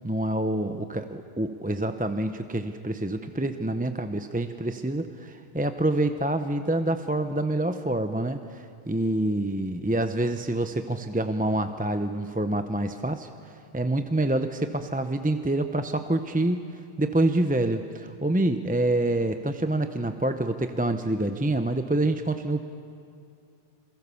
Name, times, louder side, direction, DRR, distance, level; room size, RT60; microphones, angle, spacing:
voice 1, 0.0-22.6, right 1 dB, 10° right, 8 dB, 0.5 m, -27 dB
27.5 x 22.5 x 7.0 m, 2.4 s
omnidirectional pair, 1.2 m